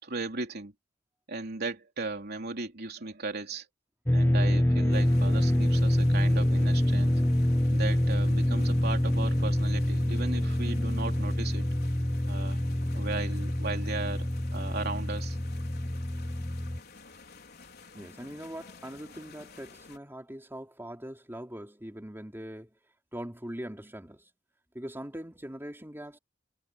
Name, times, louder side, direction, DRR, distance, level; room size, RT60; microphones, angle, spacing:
voice 1, 0.0-0.7 1.3-3.7 4.1-7.1 7.7-11.6 12.3-12.7 12.9-15.4, right 3 dB, 55° right, 3.4 m, -36 dB
sound 1, 4.1-16.8, left 1 dB, 10° left, 0.6 m, -26 dB
sound 2, 4.9-20.0, left 4 dB, 55° left, 4.7 m, -51 dB
voice 2, 17.9-22.7 23.1-24.3 24.7-26.2, equal, 10° right, 3.4 m, -41 dB
head